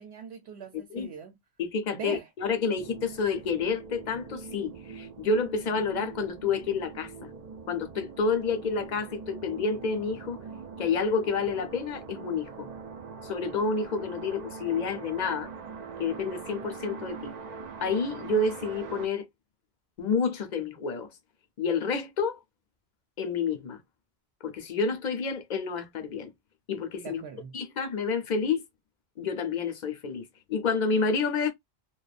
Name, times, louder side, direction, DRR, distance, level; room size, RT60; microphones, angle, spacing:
voice 1, 0.0-1.4 1.9-2.3 27.0-27.6, right 6 dB, 85° right, 0.9 m, -41 dB
voice 2, 1.6-7.3 7.7-10.4 10.8-12.7 13.2-15.5 16.0-17.4 17.8-19.3 20.0-21.1 21.6-22.4 23.2-23.8 24.4-26.3 26.7-27.2 27.5-28.6 29.2-31.5, left 4 dB, 50° left, 0.7 m, -29 dB
sound 1, 2.8-19.1, right 5 dB, 55° right, 0.5 m, -42 dB
2.4 x 2.3 x 2.4 m
omnidirectional pair, 1.0 m